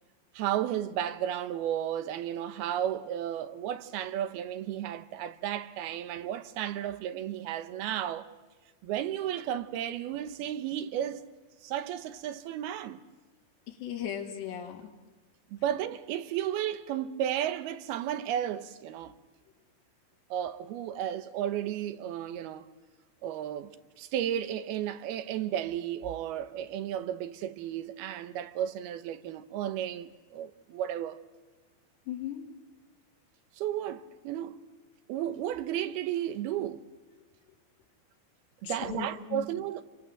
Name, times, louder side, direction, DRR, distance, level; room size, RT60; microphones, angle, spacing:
voice 1, 0.3-8.3 8.8-11.2 11.6-13.0 15.5-19.2 20.3-22.7 23.2-23.7 24.0-31.2 33.6-34.6 35.1-36.9 38.6-39.8, right 11 dB, 75° right, 2.6 m, -33 dB
voice 2, 13.7-14.9 32.1-32.4 38.6-39.5, left 9 dB, 75° left, 4.3 m, -37 dB
29.0 x 23.5 x 7.8 m
omnidirectional pair, 5.0 m